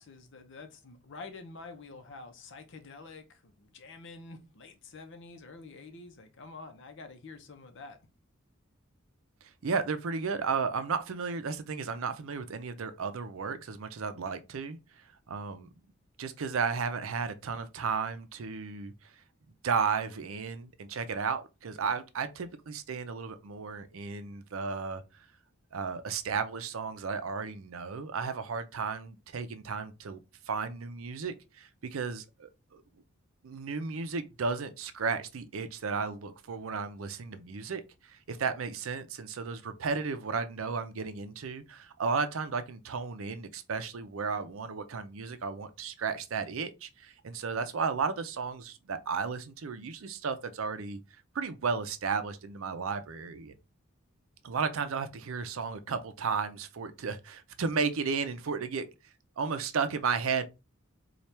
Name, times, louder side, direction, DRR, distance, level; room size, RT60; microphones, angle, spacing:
voice 1, 0.0-8.0, left 3 dB, 60° left, 0.8 m, -48 dB
voice 2, 9.6-14.8 15.3-15.7 16.2-19.1 19.6-25.0 25.7-30.2 30.5-32.8 33.4-51.0 51.3-53.5 54.4-58.9 59.4-60.5, right 5 dB, 75° right, 0.5 m, -34 dB
4.2 x 2.4 x 3.2 m
head